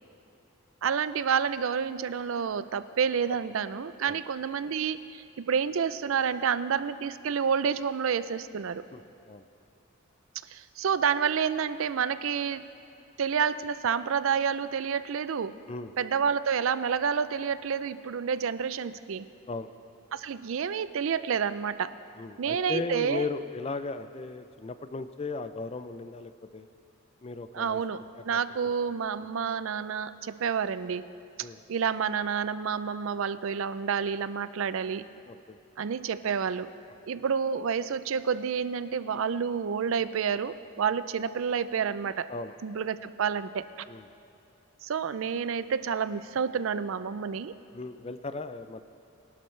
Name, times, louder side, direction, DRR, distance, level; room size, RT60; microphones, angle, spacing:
voice 1, 0.8-8.8 10.5-12.7 13.2-15.6 16.0-19.3 20.1-21.9 22.4-23.3 27.5-31.1 31.4-35.1 35.8-36.7 37.1-42.3 42.6-43.7 44.8-47.5, right 6 dB, 65° right, 14 dB, 0.4 m, -29 dB
voice 2, 22.2-26.7 27.2-27.8 28.3-28.7 31.4-31.6 35.3-35.6 42.3-42.5 43.9-44.1 47.7-48.8, left 3 dB, 30° left, 11 dB, 0.4 m, -36 dB
22.5 x 12.0 x 3.2 m, 2.8 s
head